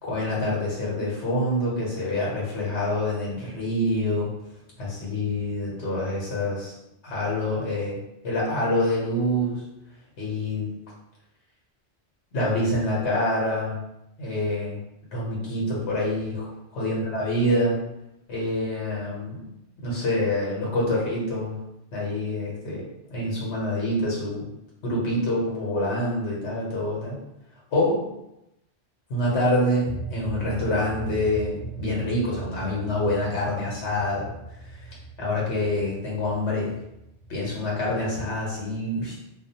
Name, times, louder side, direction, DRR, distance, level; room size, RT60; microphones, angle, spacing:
voice 1, 0.0-4.3 4.8-6.7 7.0-8.0 8.2-9.6 10.2-10.7 12.3-13.8 14.2-14.8 15.1-17.8 18.3-19.4 19.8-21.5 21.9-22.8 23.1-24.5 24.8-27.2 27.7-28.0 29.1-34.3 35.2-36.7 37.3-39.1, left 1 dB, 85° left, -4 dB, 1.1 m, -26 dB
sound 1, 29.8-38.4, right 3 dB, 55° left, 0.9 m, -38 dB
2.4 x 2.2 x 2.7 m, 0.87 s
omnidirectional pair, 1.1 m